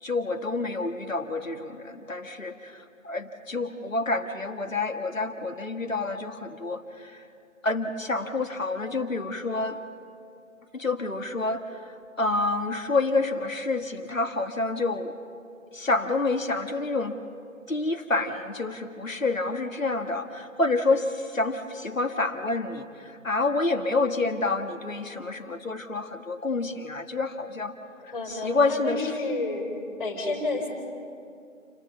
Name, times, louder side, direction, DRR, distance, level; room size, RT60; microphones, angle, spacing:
voice 1, 0.0-7.2 7.6-9.8 10.7-15.1 15.7-17.2 17.7-27.7 28.3-29.2, left 3 dB, 80° left, 6 dB, 1.7 m, -28 dB
voice 2, 28.0-29.7 30.0-30.7, left 2 dB, 35° left, 2 dB, 4.7 m, -30 dB
29.0 x 13.5 x 7.1 m, 2.4 s
figure-of-eight pair, 165°, 39 cm